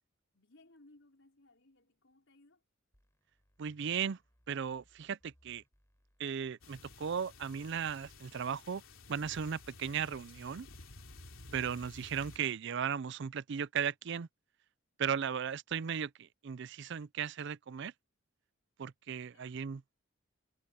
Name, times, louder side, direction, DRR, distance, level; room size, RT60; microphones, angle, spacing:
voice 1, 0.3-2.6 19.1-19.5, left 2 dB, 65° left, 4.9 m, -64 dB
sound 1, 2.9-8.5, equal, 15° left, 3.9 m, -71 dB
voice 2, 3.6-4.2 4.5-5.6 6.2-8.8 9.1-10.7 11.5-14.3 15.0-17.9 18.8-19.8, right 7 dB, 60° right, 0.4 m, -36 dB
sound 2, 6.6-12.4, left 2 dB, 85° left, 2.9 m, -53 dB
head